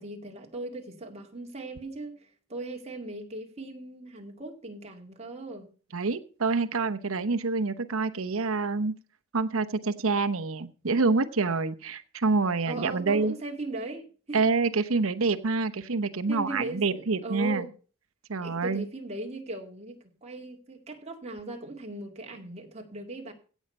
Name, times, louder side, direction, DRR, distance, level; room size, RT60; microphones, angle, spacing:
voice 1, 0.0-5.7 12.7-14.4 16.3-17.7 18.4-23.3, right 2 dB, 30° right, 2 dB, 2.2 m, -38 dB
voice 2, 5.9-8.9 9.3-13.3 14.3-17.7 18.3-18.9, right 4 dB, 75° right, 10 dB, 0.9 m, -27 dB
16.5 x 7.3 x 5.4 m, 0.39 s
head